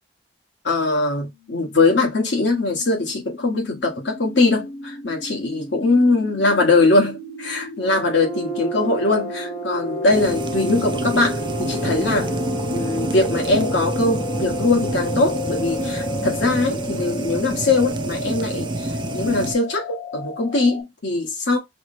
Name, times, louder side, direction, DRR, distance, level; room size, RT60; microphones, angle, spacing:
voice 1, 0.6-12.3 12.7-21.6, left 2 dB, 80° left, 1.2 m, -21 dB
sound 1, 2.1-20.8, left 2 dB, 55° left, 1.3 m, -33 dB
sound 2, 7.8-16.8, right 2 dB, 30° left, 0.9 m, -35 dB
sound 3, 10.1-19.5, right 2 dB, 25° right, 0.4 m, -28 dB
5.8 x 2.1 x 2.6 m
head